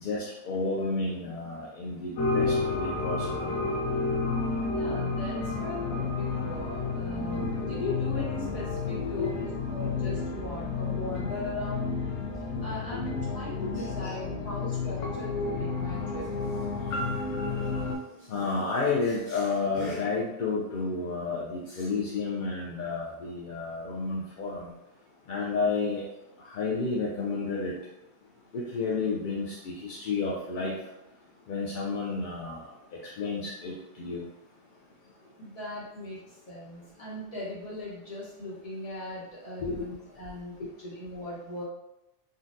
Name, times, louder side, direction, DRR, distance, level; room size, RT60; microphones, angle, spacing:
voice 1, 0.0-3.5 9.0-9.3 13.7-14.1 18.3-24.7 25.3-26.0 26.4-27.7 28.5-30.7 31.5-32.7 33.2-34.2 39.6-39.8, left 4 dB, 60° left, -4 dB, 0.5 m, -31 dB
sound 1, 2.2-18.0, left 4 dB, 90° left, 0.9 m, -31 dB
voice 2, 4.7-12.0 12.6-16.3 35.4-41.6, left 1 dB, 30° left, -7 dB, 1.0 m, -38 dB
3.8 x 2.2 x 2.5 m, 0.90 s
omnidirectional pair, 1.3 m